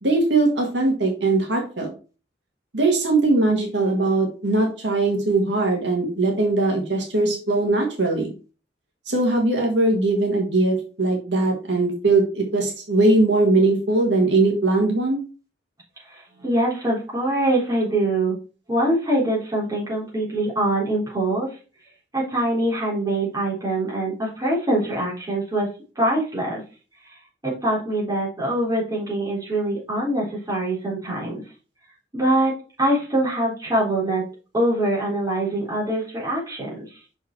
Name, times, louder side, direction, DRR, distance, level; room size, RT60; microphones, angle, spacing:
voice 1, 0.0-1.9 2.7-8.3 9.1-15.2, right 2 dB, 75° right, 1 dB, 1.8 m, -20 dB
voice 2, 16.0-18.4 18.7-21.6 22.1-25.7 26.0-26.6 27.0-31.4 32.1-34.2 34.5-37.0, right 1 dB, 20° right, -6 dB, 3.8 m, -24 dB
6.1 x 5.4 x 4.5 m, 0.35 s
head